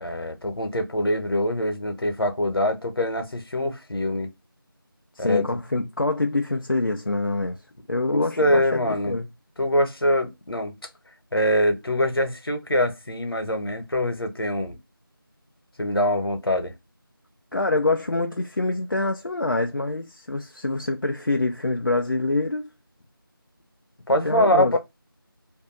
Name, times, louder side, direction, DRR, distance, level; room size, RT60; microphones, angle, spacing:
voice 1, 0.0-4.3 5.2-5.4 8.1-9.2 9.6-10.7 11.3-14.8 15.8-16.7 24.1-24.8, left 1 dB, 80° left, 1.0 m, -24 dB
voice 2, 5.2-7.6 7.9-9.3 17.5-22.7 24.2-24.8, left 2 dB, 60° left, 0.4 m, -25 dB
2.6 x 2.3 x 3.7 m
figure-of-eight pair, 175°, 12 cm